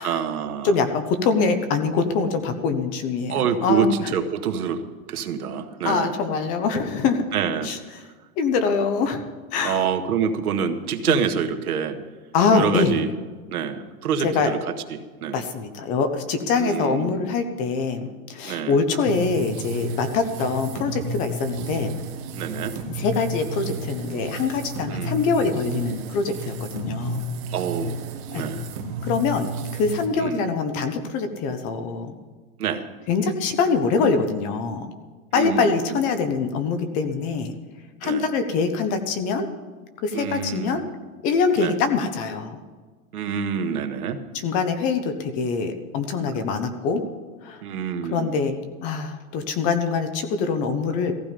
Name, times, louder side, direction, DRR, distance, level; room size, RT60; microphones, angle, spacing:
voice 1, 0.0-0.8 3.3-4.8 5.1-6.2 7.3-7.7 9.6-12.0 12.5-13.1 13.5-15.4 16.6-17.3 18.4-18.8 22.3-22.8 24.9-25.2 27.5-28.7 30.1-30.5 32.6-32.9 35.3-36.0 38.0-38.3 40.1-40.9 41.6-41.8 43.1-44.2 47.6-48.3, right 7 dB, 85° right, 6 dB, 1.8 m, -26 dB
voice 2, 0.6-3.3 3.6-3.9 5.8-7.2 7.6-7.8 8.4-9.2 9.5-9.8 11.1-11.2 12.3-13.0 14.2-14.5 15.3-21.9 22.9-27.2 28.3-28.5 29.0-32.1 33.1-34.9 35.3-37.5 38.0-39.5 40.0-40.8 41.2-42.6 44.4-47.0 47.4-47.6 48.1-51.1, left 4 dB, 20° left, 9 dB, 0.7 m, -24 dB
sound 1, 19.1-30.1, right 1 dB, 35° right, 2.1 m, -32 dB
16.5 x 15.0 x 5.2 m, 1.4 s
supercardioid pair, 165°, 43 cm